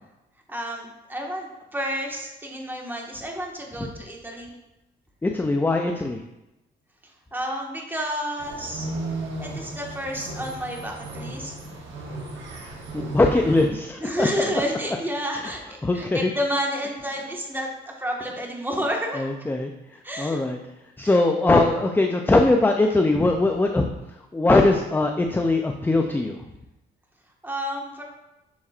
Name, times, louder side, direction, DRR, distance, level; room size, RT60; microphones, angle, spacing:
voice 1, 0.5-4.5 7.3-8.9 9.4-11.5 14.0-19.5 20.0-20.4 21.0-21.1 27.4-28.0, equal, 10° right, -1 dB, 1.5 m, -30 dB
voice 2, 5.2-6.2 12.9-14.3 15.4-15.5 15.8-16.3 19.2-19.7 20.2-20.6 21.0-23.9 24.3-26.4, left 2 dB, 10° left, 4 dB, 0.5 m, -21 dB
sound 1, 8.4-13.7, right 2 dB, 70° right, 1.3 m, -35 dB
7.1 x 6.2 x 2.5 m, 0.94 s
cardioid pair, 90°, 20 cm